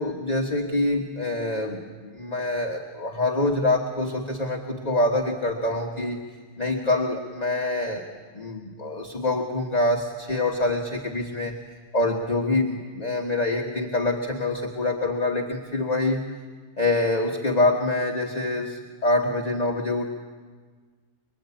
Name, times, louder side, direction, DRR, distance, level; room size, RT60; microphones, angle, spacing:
voice 1, 0.0-6.2 6.6-8.1 8.3-11.6 11.9-16.2 16.8-20.0, left 2 dB, 30° left, 1 dB, 1.6 m, -25 dB
24.5 x 24.0 x 8.6 m, 1.5 s
omnidirectional pair, 1.3 m